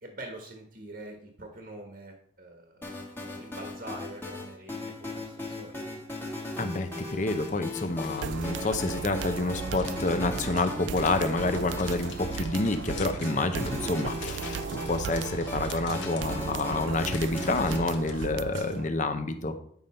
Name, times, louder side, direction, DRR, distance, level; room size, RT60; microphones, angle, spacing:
voice 1, 0.0-5.8, right 1 dB, 50° right, 3 dB, 1.3 m, -45 dB
sound 1, 2.8-17.8, left 2 dB, 10° left, 1.3 m, -38 dB
voice 2, 6.6-19.6, left 2 dB, 40° left, 8 dB, 0.7 m, -28 dB
sound 2, 6.7-18.8, left 6 dB, 65° left, 1.0 m, -48 dB
sound 3, 8.2-18.9, right 7 dB, 65° right, 0.3 m, -36 dB
9.3 x 5.4 x 4.2 m, 0.65 s
head